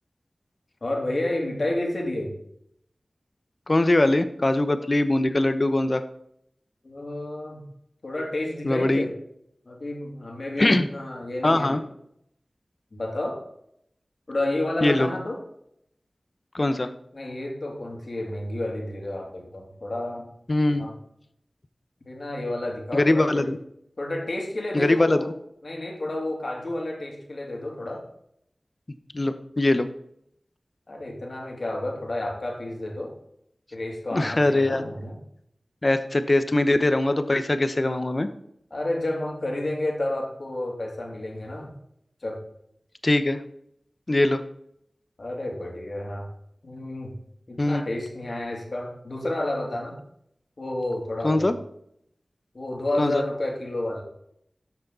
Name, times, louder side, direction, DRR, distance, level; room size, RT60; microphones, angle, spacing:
voice 1, 0.8-2.3 6.8-7.6 8.0-9.1 9.7-11.8 12.9-13.4 14.3-15.4 17.1-20.2 20.7-21.0 22.1-23.5 24.0-25.3 25.6-28.0 30.9-33.1 33.7-35.2 38.7-41.7 42.2-42.4 45.2-46.3 46.6-47.1 47.5-50.0 50.6-51.5 52.5-54.0, left 1 dB, 65° left, 0 dB, 2.7 m, -30 dB
voice 2, 3.7-6.0 8.6-9.0 10.6-10.8 11.4-11.8 14.8-15.1 16.5-16.9 20.5-20.9 22.9-23.6 24.7-25.2 29.1-29.9 34.1-34.9 35.8-38.3 43.0-43.4 44.1-44.4 47.6-47.8 51.2-51.5 53.0-53.2, left 2 dB, 40° left, 10 dB, 0.9 m, -22 dB
13.0 x 6.6 x 4.0 m, 0.73 s
wide cardioid pair, 65°, 0 cm